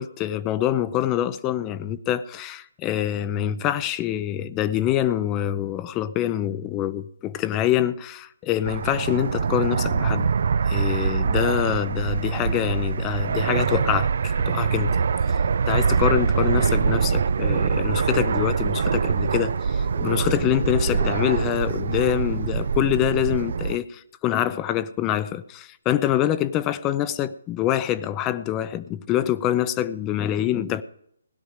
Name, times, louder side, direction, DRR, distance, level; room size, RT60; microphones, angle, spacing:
voice 1, 0.0-10.3 10.7-15.0 15.3-15.4 15.7-30.8, left 12 dB, 20° left, 0.5 m, -25 dB
Fixed-wing aircraft airplane, 8.7-23.8, right 5 dB, 60° right, 0.5 m, -24 dB
17.0 x 11.0 x 4.9 m
figure-of-eight pair, 145°, 0 cm